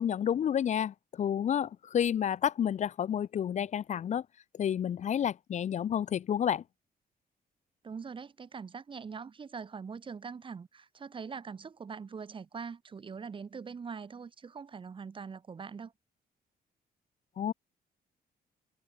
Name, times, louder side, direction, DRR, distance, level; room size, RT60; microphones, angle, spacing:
voice 1, 0.0-4.2 4.5-6.6 17.4-17.5, left 9 dB, 45° left, 0.7 m, -30 dB
voice 2, 7.8-15.9, right 5 dB, 30° right, 1.9 m, -43 dB
wide cardioid pair, 170°, 17 cm